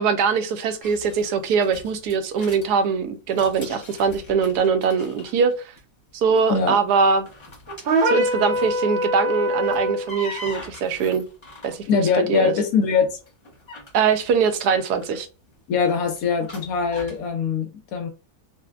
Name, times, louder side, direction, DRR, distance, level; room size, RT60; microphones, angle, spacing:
voice 1, 0.0-5.7 6.1-7.3 8.0-11.2 11.6-12.0 12.3-12.5 13.9-15.3, right 5 dB, 80° right, 1.1 m, -22 dB
sound 1, 0.8-2.7 3.2-5.8 6.1-6.5 7.1-8.9 9.5-12.5 13.0-17.3, left 1 dB, 25° left, 0.6 m, -42 dB
sound 2, 7.8-10.1, equal, 60° right, 0.6 m, -23 dB
voice 2, 11.9-13.2 15.7-18.1, left 5 dB, 70° left, 1.0 m, -22 dB
4.1 x 2.1 x 2.3 m
omnidirectional pair, 1.7 m